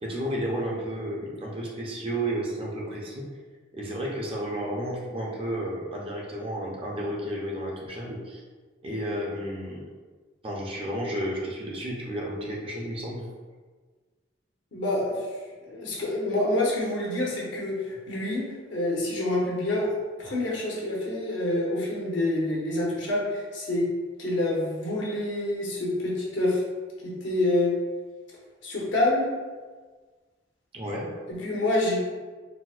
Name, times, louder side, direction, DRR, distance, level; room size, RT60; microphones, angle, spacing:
voice 1, 0.0-3.3 3.7-8.4 8.8-9.9 10.4-13.3 30.7-31.1, right 1 dB, 30° right, -3 dB, 0.5 m, -32 dB
voice 2, 14.7-15.3 15.6-18.4 18.7-19.9 20.2-23.9 24.2-26.6 27.0-27.7 28.6-29.3 31.3-32.0, left 2 dB, 80° left, -4 dB, 0.9 m, -27 dB
4.0 x 2.1 x 2.4 m, 1.4 s
head